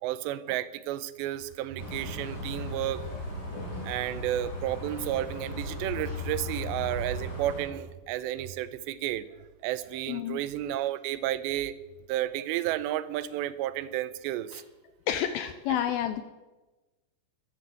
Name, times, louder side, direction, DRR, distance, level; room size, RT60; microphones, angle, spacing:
voice 1, 0.0-3.1 3.8-9.3 9.6-11.7 12.1-14.6, right 13 dB, 85° right, 15 dB, 2.9 m, -32 dB
sound 1, 1.8-7.6, left 1 dB, 25° left, 5.4 m, -36 dB
voice 2, 10.1-10.4 14.5-14.6 15.1-16.2, left 10 dB, 85° left, 10 dB, 2.2 m, -29 dB
13.5 x 11.5 x 7.7 m, 1.2 s
omnidirectional pair, 4.9 m